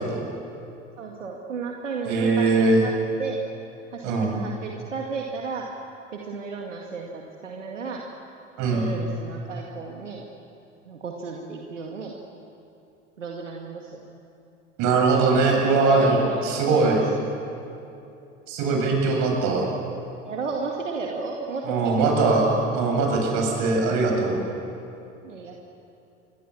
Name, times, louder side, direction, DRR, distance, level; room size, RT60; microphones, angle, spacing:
voice 1, 1.0-2.9 3.2-3.4 3.9-5.7 6.1-8.0 8.7-10.3 10.9-12.1 13.2-14.0 15.3-17.0 20.2-22.6 23.2-23.5 25.2-25.6, right 4 dB, 85° right, 0 dB, 2.2 m, -33 dB
voice 2, 2.0-2.8 4.0-4.4 8.6-8.9 14.8-16.2 16.4-17.0 18.5-19.7 21.6-22.5 22.7-24.4, right 3 dB, 55° right, 1 dB, 8.0 m, -21 dB
27.5 x 23.0 x 7.3 m, 2.8 s
figure-of-eight pair, 75°, 36 cm